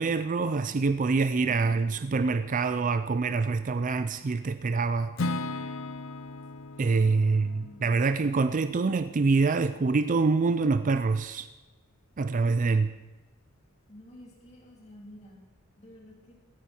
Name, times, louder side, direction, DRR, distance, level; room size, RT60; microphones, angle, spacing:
voice 1, 0.0-5.1 6.8-11.5 12.2-12.9, right 4 dB, 40° right, 11 dB, 0.4 m, -25 dB
Acoustic guitar / Strum, 5.2-9.2, left 2 dB, 70° left, 0.7 m, -37 dB
voice 2, 7.1-8.0 13.9-15.4 15.8-16.3, left 1 dB, 35° left, -2 dB, 3.5 m, -50 dB
16.0 x 14.5 x 4.5 m, 1.1 s
head